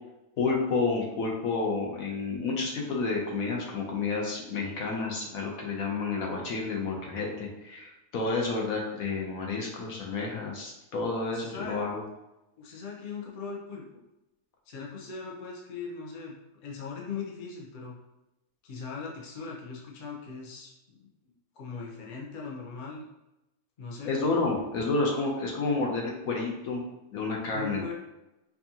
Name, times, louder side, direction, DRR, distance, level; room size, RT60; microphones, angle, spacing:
voice 1, 0.4-12.0 24.0-26.9 27.1-27.9, left 3 dB, 65° left, -1 dB, 1.1 m, -30 dB
voice 2, 11.3-11.8 12.6-13.9 14.7-18.0 18.6-23.0 23.8-24.1 27.5-27.9, left 5 dB, 45° left, -2 dB, 0.6 m, -40 dB
4.5 x 2.7 x 2.8 m, 0.94 s
omnidirectional pair, 1.7 m